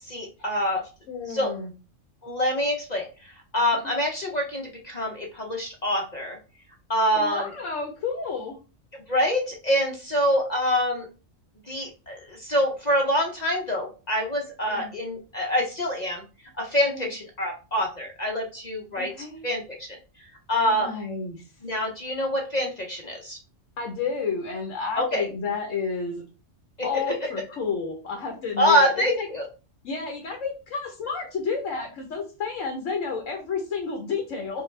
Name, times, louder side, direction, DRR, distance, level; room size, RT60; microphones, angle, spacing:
voice 1, 0.1-0.8 1.3-1.5 2.2-3.1 3.5-6.4 6.9-7.5 9.1-11.1 11.7-16.2 16.6-19.1 19.4-19.9 20.5-20.9 21.6-23.4 25.0-25.3 26.9-27.1 28.6-29.4, equal, 40° left, 1 dB, 0.7 m, -25 dB
voice 2, 1.1-1.7 3.8-3.9 7.1-8.6 14.6-14.9 16.9-17.1 19.0-19.4 20.5-21.4 23.8-26.2 26.8-29.3 29.8-34.6, left 5 dB, 80° left, 2 dB, 1.2 m, -31 dB
5.6 x 2.3 x 3.2 m, 0.33 s
omnidirectional pair, 1.3 m